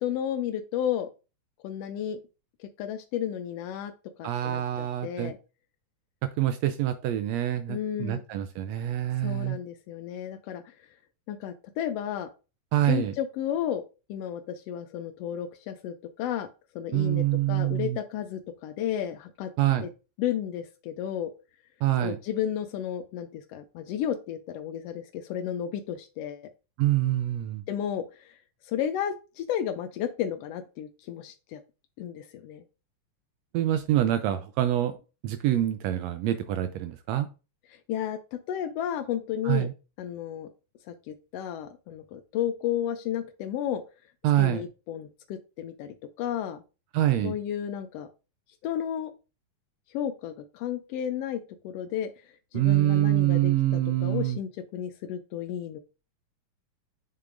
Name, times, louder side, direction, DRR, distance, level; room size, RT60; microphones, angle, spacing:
voice 1, 0.0-1.1 1.6-2.2 2.8-3.9 4.2-5.4 7.7-8.2 9.2-10.7 11.3-12.3 12.9-13.8 14.1-16.5 16.7-19.5 19.8-19.9 20.2-21.3 22.0-26.5 27.7-28.4 28.6-31.6 32.0-32.6 37.7-39.7 40.0-40.5 40.9-43.8 44.4-46.6 47.2-48.1 48.6-49.1 49.9-52.1 52.5-55.8, left 10 dB, 90° left, 9 dB, 1.4 m, -33 dB
voice 2, 4.2-5.3 6.2-9.6 12.7-13.1 16.9-18.0 19.6-19.9 21.8-22.2 26.8-27.6 33.5-34.9 35.2-37.3 39.4-39.7 44.2-44.6 46.9-47.3 52.5-54.4, right 13 dB, 80° right, 10 dB, 1.6 m, -25 dB
6.7 x 6.7 x 2.5 m, 0.31 s
omnidirectional pair, 3.4 m